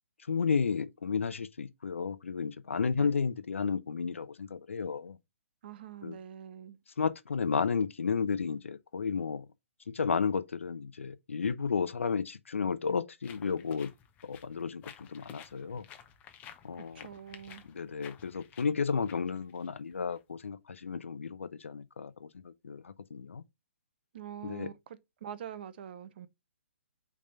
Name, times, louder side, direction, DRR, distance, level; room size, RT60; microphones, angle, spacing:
voice 1, 0.3-5.2 6.0-6.2 7.0-9.4 9.9-13.9 14.2-14.8 15.1-15.8 16.6-17.1 17.7-23.4 24.4-24.7, left 5 dB, 75° left, 0.7 m, -32 dB
voice 2, 5.6-6.8 16.9-17.6 24.1-26.3, right 9 dB, 50° right, 0.8 m, -45 dB
sound 1, 13.2-20.2, left 9 dB, 20° left, 0.8 m, -53 dB
5.5 x 3.6 x 5.4 m
figure-of-eight pair, 130°, 7 cm